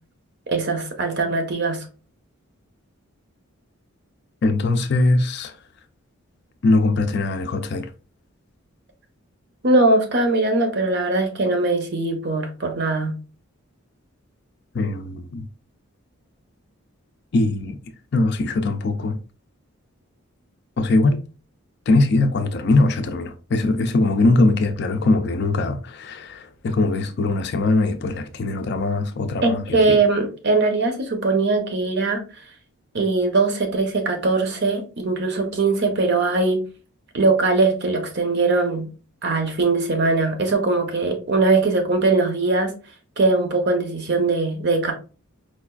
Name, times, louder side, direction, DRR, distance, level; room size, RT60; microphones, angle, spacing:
voice 1, 0.5-1.9 9.6-13.1 29.4-32.4 32.9-36.6 37.1-38.9 39.2-42.7 43.2-44.9, right 3 dB, 50° right, 0.7 m, -21 dB
voice 2, 4.4-5.6 6.6-7.9 14.7-15.4 17.3-17.8 18.1-19.2 20.8-21.2 21.9-30.0, left 2 dB, 50° left, 0.4 m, -21 dB
4.6 x 2.4 x 2.2 m
head